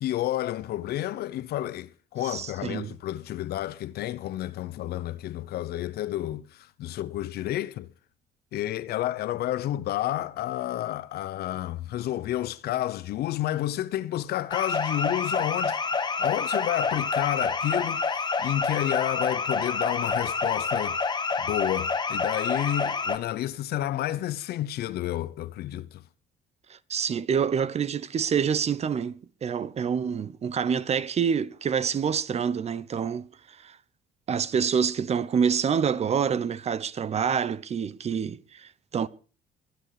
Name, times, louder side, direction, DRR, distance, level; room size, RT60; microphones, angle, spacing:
voice 1, 0.0-7.9 8.5-26.0, left 13 dB, 70° left, 0.9 m, -30 dB
voice 2, 2.2-2.9 26.7-33.8 34.3-39.1, right 7 dB, 40° right, 0.9 m, -27 dB
sound 1, 14.5-23.2, left 4 dB, 25° left, 1.5 m, -28 dB
23.0 x 8.1 x 4.9 m
cardioid pair, 110°, 17 cm